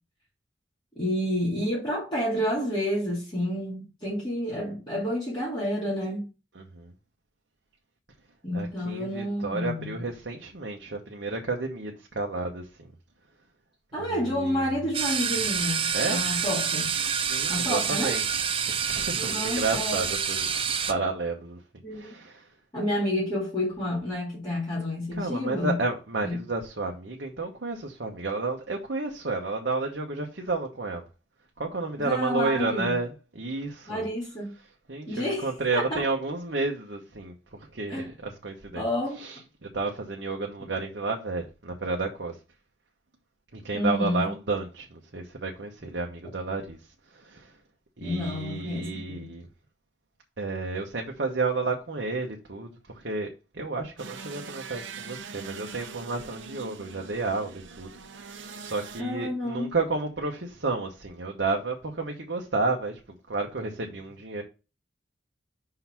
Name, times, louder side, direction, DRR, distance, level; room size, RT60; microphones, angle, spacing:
voice 1, 1.0-6.2 8.4-9.9 13.9-16.9 17.5-18.2 19.1-20.0 21.8-22.2 22.7-25.8 26.2-26.4 32.0-32.9 33.9-34.5 35.1-36.0 37.9-38.1 38.7-39.2 43.7-44.3 48.0-49.3 59.0-59.7, left 1 dB, 25° left, 2.5 m, -29 dB
voice 2, 6.5-6.9 8.5-12.9 14.0-14.8 15.9-16.2 17.3-21.6 21.9-22.5 25.2-31.0 31.6-34.1 34.9-38.9 39.2-42.4 43.5-46.8 47.1-47.5 48.0-49.4 50.4-53.3 53.5-57.9 58.6-63.0 63.3-64.4, right 3 dB, 65° right, 1.0 m, -31 dB
sound 1, 14.9-20.9, right 7 dB, 30° right, 0.6 m, -28 dB
sound 2, 54.0-59.0, right 5 dB, 85° right, 0.7 m, -42 dB
5.7 x 3.9 x 5.8 m
head